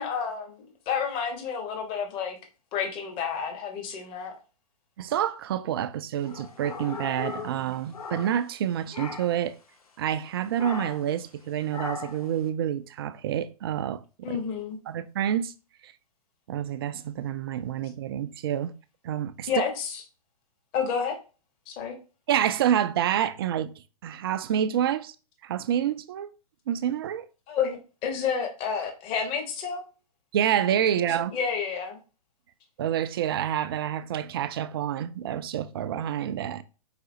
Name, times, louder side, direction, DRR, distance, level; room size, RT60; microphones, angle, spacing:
voice 1, 0.0-2.4 2.7-4.3 14.2-14.8 19.5-20.0 20.7-21.2 21.7-22.0 27.5-29.8 30.9-31.1 31.3-32.0, left 6 dB, 25° left, 1.1 m, -30 dB
voice 2, 5.0-9.5 10.0-14.0 14.3-14.4 14.9-15.5 15.8-15.9 16.5-18.7 19.0-19.5 22.3-23.7 24.0-25.1 25.4-26.3 26.7-27.3 30.3-31.3 32.8-36.6, right 10 dB, 40° right, 0.4 m, -28 dB
sound 1, 6.2-8.6 8.9-9.5 10.6-11.1 11.7-12.3, left 5 dB, 70° left, 0.9 m, -38 dB
4.9 x 4.0 x 2.7 m
figure-of-eight pair, 115°, 19 cm